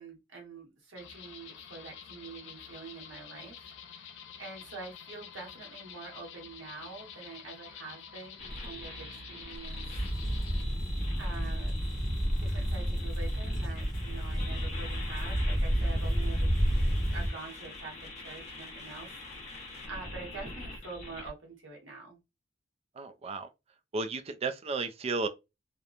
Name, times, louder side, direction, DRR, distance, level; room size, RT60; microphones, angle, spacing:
voice 1, 0.0-10.0 11.2-11.9 12.4-16.5 17.1-19.1 19.3-22.2, right 3 dB, 75° right, 1.2 m, -46 dB
sound 1, 1.0-10.6, left 8 dB, 70° left, 0.4 m, -49 dB
sound 2, 8.4-21.3, left 2 dB, 35° left, 0.8 m, -44 dB
sound 3, 9.9-17.3, equal, ahead, 0.8 m, -30 dB
voice 2, 23.0-23.5 23.9-25.3, right 3 dB, 30° right, 0.3 m, -33 dB
2.9 x 2.1 x 2.4 m
head